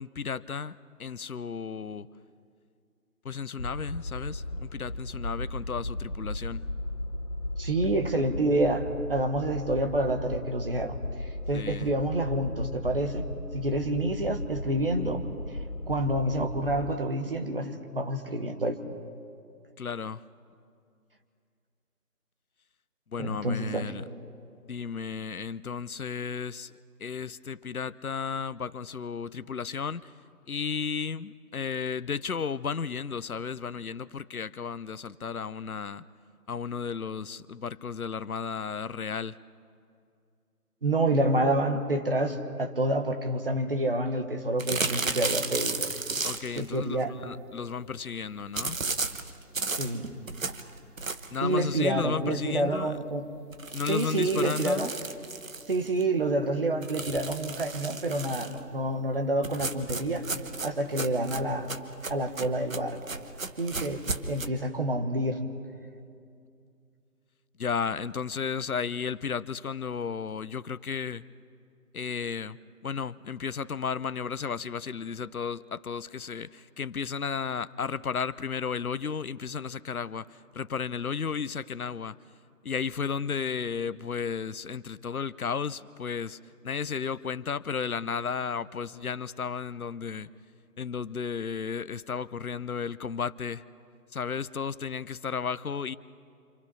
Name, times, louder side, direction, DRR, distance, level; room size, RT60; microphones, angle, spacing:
voice 1, 0.0-2.1 3.2-6.7 11.5-11.9 19.8-20.2 23.1-24.0 24.7-26.7 27.0-30.1 30.5-36.0 36.5-39.3 46.2-48.8 51.3-53.0 53.7-54.9 67.6-71.2 71.9-82.2 82.6-86.4 86.6-90.3 90.8-93.6 94.1-96.0, left 6 dB, 65° left, 16 dB, 0.8 m, -33 dB
sound 1, 3.6-16.9, left 1 dB, 85° left, 2.6 m, -36 dB
voice 2, 7.6-11.0 11.2-13.2 13.5-15.2 15.9-18.8 23.2-23.9 40.8-45.9 46.5-47.1 49.7-50.1 51.4-53.3 53.9-54.9 55.7-60.3 60.6-61.7 62.1-63.0 63.6-64.0 64.3-65.4, right 1 dB, 35° right, 5 dB, 1.4 m, -28 dB
sound 2, 44.6-46.7 48.5-51.5 51.9-52.0 52.3-52.4 52.7-52.8 53.5-56.0 56.8-58.6 59.4-64.5, right 3 dB, 55° right, 1.4 m, -34 dB
27.5 x 27.5 x 5.6 m, 2.4 s
figure-of-eight pair, 160°, 47 cm